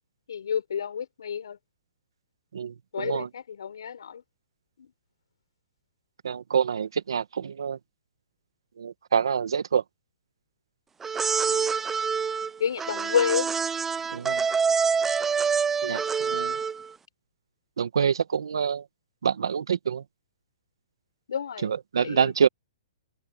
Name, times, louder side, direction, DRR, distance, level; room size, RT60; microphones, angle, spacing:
voice 1, 0.3-1.6 2.9-4.2 4.8-4.9 11.5-11.7 12.6-13.5 15.9-16.1 21.3-21.7 22.0-22.3, left 7 dB, 80° left, 5.0 m, -30 dB
voice 2, 2.5-3.3 6.2-7.8 8.8-9.8 14.1-14.4 15.8-16.6 17.8-18.8 19.2-20.0 21.6-22.5, right 7 dB, 85° right, 1.4 m, -26 dB
sound 1, 11.0-16.9, right 6 dB, 10° right, 0.6 m, -26 dB
hypercardioid pair, 155°, 2 cm